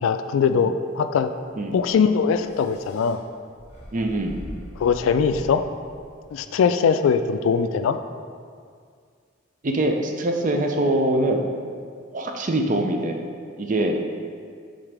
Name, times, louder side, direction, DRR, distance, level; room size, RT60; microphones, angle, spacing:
voice 1, 0.0-1.3 1.7-3.2 4.8-5.6 6.3-8.0, left 6 dB, 85° left, 10 dB, 0.3 m, -21 dB
sound 1, 1.5-6.6, equal, 35° left, 0.9 m, -43 dB
voice 2, 3.9-4.4 9.6-11.5 12.1-13.2 13.6-14.1, right 1 dB, 40° right, 3 dB, 0.5 m, -23 dB
7.2 x 3.9 x 3.4 m, 2.1 s
head